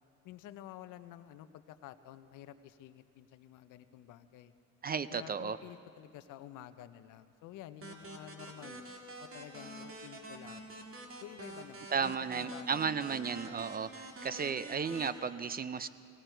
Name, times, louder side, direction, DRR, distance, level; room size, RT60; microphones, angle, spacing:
voice 1, 0.2-4.5 5.1-8.8 9.2-10.8 11.2-12.9 13.4-13.6, left 12 dB, 85° left, 12 dB, 0.7 m, -51 dB
voice 2, 4.8-5.6 11.9-13.9 14.2-15.9, right 6 dB, 30° right, 14 dB, 0.5 m, -34 dB
sound 1, 7.8-15.1, right 2 dB, 45° right, 2.1 m, -47 dB
18.5 x 17.0 x 4.5 m, 2.4 s
cardioid pair, 90°, 30 cm